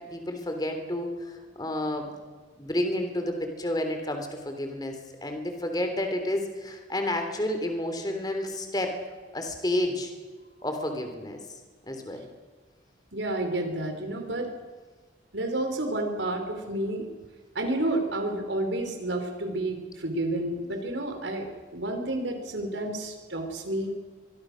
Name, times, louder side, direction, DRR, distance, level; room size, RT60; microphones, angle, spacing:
voice 1, 0.1-2.1 2.6-9.0 9.3-10.1 10.6-11.4 11.9-12.2, left 1 dB, 20° left, 5 dB, 3.3 m, -30 dB
voice 2, 13.1-14.5 15.3-17.1 17.5-21.5 21.7-23.9, right 1 dB, 75° right, 5 dB, 4.8 m, -30 dB
24.0 x 23.5 x 6.4 m, 1.4 s
head